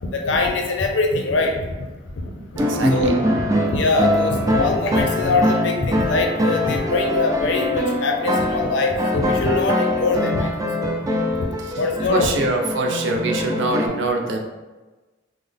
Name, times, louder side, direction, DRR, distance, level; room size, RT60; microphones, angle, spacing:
voice 1, 0.0-1.6 2.2-2.3 2.9-3.2 3.7-10.5 10.8-10.9 11.8-12.5, left 3 dB, 75° left, 2 dB, 0.6 m, -22 dB
voice 2, 2.4-3.1 12.1-14.4, right 2 dB, 75° right, 2 dB, 0.5 m, -24 dB
sound 1, 2.6-13.9, left 1 dB, 20° right, 0.3 m, -23 dB
3.7 x 2.0 x 3.4 m, 1.2 s
head